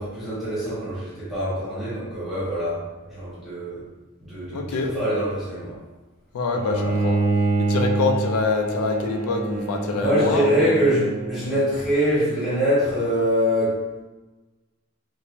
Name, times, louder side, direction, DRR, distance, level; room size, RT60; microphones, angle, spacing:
voice 1, 0.0-2.8 3.1-3.8 4.2-5.7 6.7-6.9 9.9-14.0, equal, ahead, -11 dB, 1.0 m, -24 dB
voice 2, 4.5-4.9 6.3-7.2 7.6-10.6, left 4 dB, 85° left, 3 dB, 0.4 m, -25 dB
Bowed string instrument, 6.6-11.8, right 3 dB, 40° right, 0.3 m, -26 dB
3.0 x 2.0 x 2.5 m, 1.2 s
head